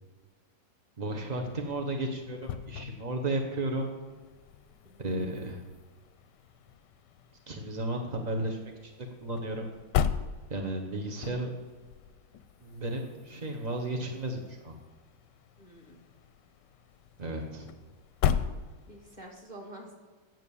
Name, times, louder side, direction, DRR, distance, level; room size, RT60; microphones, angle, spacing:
voice 1, 1.0-3.9 5.0-5.6 7.5-8.9 9.2-9.7 10.5-11.5 12.6-14.7 17.2-17.7, right 1 dB, 40° right, 2 dB, 0.6 m, -33 dB
sound 1, 1.2-19.3, left 8 dB, 75° left, 1.1 m, -38 dB
voice 2, 15.6-16.0 18.9-19.9, right 1 dB, 25° right, 0 dB, 1.9 m, -47 dB
9.1 x 7.7 x 7.0 m, 1.4 s
omnidirectional pair, 2.1 m